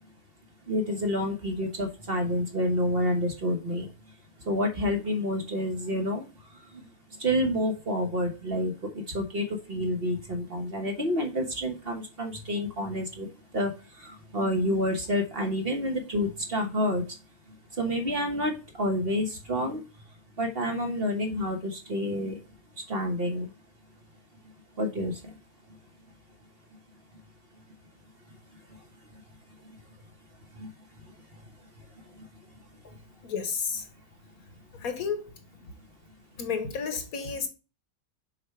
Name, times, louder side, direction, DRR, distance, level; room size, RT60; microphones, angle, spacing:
voice 1, 0.7-3.9 4.4-6.3 7.2-13.3 13.5-13.7 14.0-17.0 17.8-18.5 18.8-19.8 20.4-22.4 22.9-23.5 24.8-25.3 30.6-30.7, left 1 dB, 40° right, 1.3 m, -28 dB
voice 2, 33.2-33.9 34.7-35.3 35.6-35.7 36.4-37.5, left 6 dB, 65° left, 1.6 m, -31 dB
6.7 x 4.6 x 3.2 m
omnidirectional pair, 1.7 m